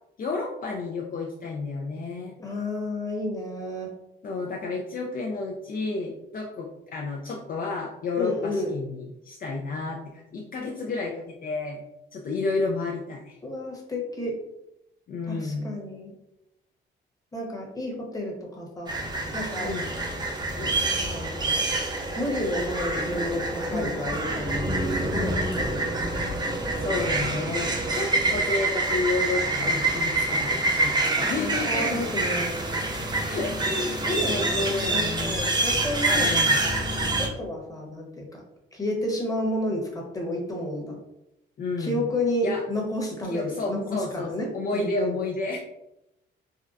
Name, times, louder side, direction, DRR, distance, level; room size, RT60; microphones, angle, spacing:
voice 1, 0.2-2.3 4.2-11.8 12.1-13.4 15.1-15.7 19.6-19.9 23.7-24.0 26.8-32.1 33.3-35.4 36.1-36.6 41.6-42.0 42.4-42.6 43.3-45.6, left 3 dB, 45° left, 0 dB, 0.4 m, -31 dB
voice 2, 2.4-3.9 8.2-8.7 13.4-14.4 15.3-16.1 17.3-18.9 19.3-19.7 20.6-20.7 21.1-21.6 22.2-25.9 31.3-32.9 34.0-34.6 34.9-36.8 37.1-38.4 38.7-41.0 41.8-44.5 44.7-45.2, left 1 dB, 15° left, -1 dB, 1.0 m, -31 dB
sound 1, 18.9-37.3, right 2 dB, 20° right, 0.7 m, -26 dB
3.6 x 2.2 x 2.5 m, 0.86 s
cardioid pair, 90°, 20 cm